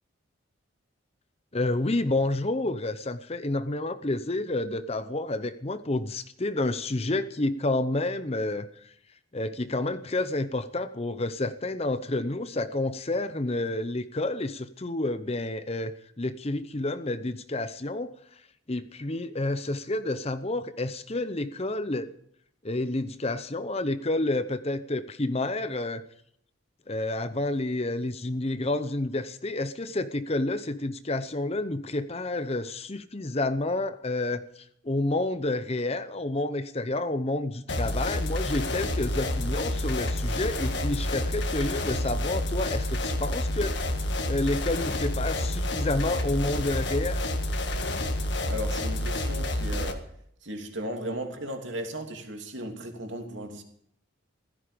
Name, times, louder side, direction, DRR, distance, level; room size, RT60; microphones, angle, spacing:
voice 1, 1.5-8.9 9.3-18.4 18.7-22.1 22.6-26.0 26.9-47.2, left 2 dB, 30° left, 0.8 m, -29 dB
sound 1, 37.7-49.9, left 1 dB, 55° left, 1.8 m, -29 dB
voice 2, 48.5-50.1 50.4-53.6, right 1 dB, 60° right, 3.0 m, -36 dB
16.0 x 14.0 x 5.2 m
head